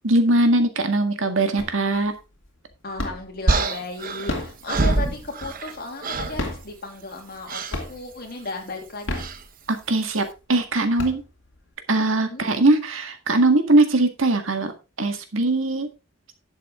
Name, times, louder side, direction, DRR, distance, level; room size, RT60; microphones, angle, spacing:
voice 1, 0.0-2.1 9.7-11.2 11.9-14.7 15.0-15.9, right 2 dB, 85° right, 7 dB, 1.8 m, -20 dB
sound 1, 1.6-2.1 2.4-3.4 4.1-5.9 6.3-7.4 7.7-8.3 8.9-9.9 10.4-10.5 10.8-11.7, left 1 dB, 65° left, 2.6 m, -32 dB
voice 2, 2.8-7.6 7.9-9.2 12.2-12.4, left 2 dB, 50° left, 2 dB, 3.0 m, -34 dB
sound 2, 3.5-5.8 6.0-6.4 7.5-7.8 9.2-9.4, right 2 dB, 45° right, 1.1 m, -25 dB
11.0 x 7.5 x 3.6 m, 0.29 s
head